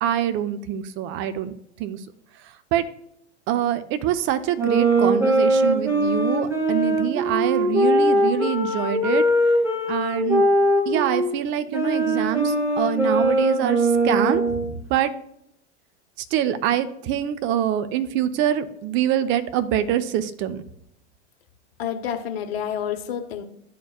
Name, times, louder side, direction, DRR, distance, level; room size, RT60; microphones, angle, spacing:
voice 1, 0.0-1.5 1.8-2.0 2.7-2.9 3.5-9.2 9.9-10.5 10.9-15.1 16.3-20.6, right 10 dB, 35° right, 11 dB, 0.7 m, -25 dB
sound 1, 4.6-11.3 11.7-14.7, right 1 dB, 5° right, 2.1 m, -21 dB
voice 2, 21.8-23.4, left 9 dB, 60° left, 6 dB, 1.1 m, -29 dB
11.5 x 4.4 x 2.4 m, 0.74 s
figure-of-eight pair, 95°, 34 cm